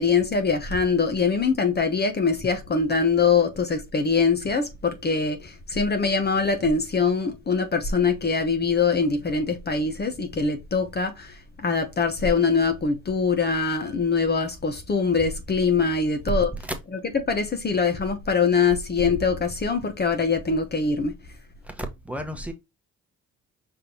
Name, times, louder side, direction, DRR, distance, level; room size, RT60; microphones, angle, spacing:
voice 1, 0.0-16.5 17.3-21.1, left 5 dB, 35° left, 0.9 m, -23 dB
voice 2, 21.6-22.5, equal, 5° right, 1.1 m, -34 dB
5.3 x 3.4 x 2.9 m
cardioid pair, 90°, 30 cm